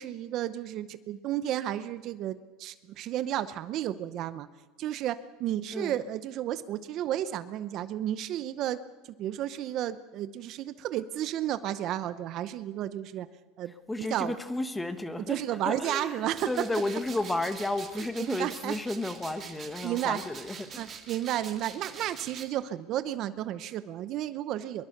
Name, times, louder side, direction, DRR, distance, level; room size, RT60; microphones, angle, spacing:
voice 1, 0.0-4.5 4.8-8.8 9.2-13.3 13.6-14.3 15.3-16.7 18.0-18.7 19.8-20.2 20.8-24.8, right 12 dB, 45° right, 13 dB, 0.8 m, -32 dB
voice 2, 13.9-20.9, left 2 dB, 5° left, 9 dB, 1.4 m, -33 dB
sound 1, 16.3-22.4, right 7 dB, 25° right, 2.5 m, -45 dB
24.0 x 22.5 x 6.6 m, 1.3 s
cardioid pair, 155°, 0 cm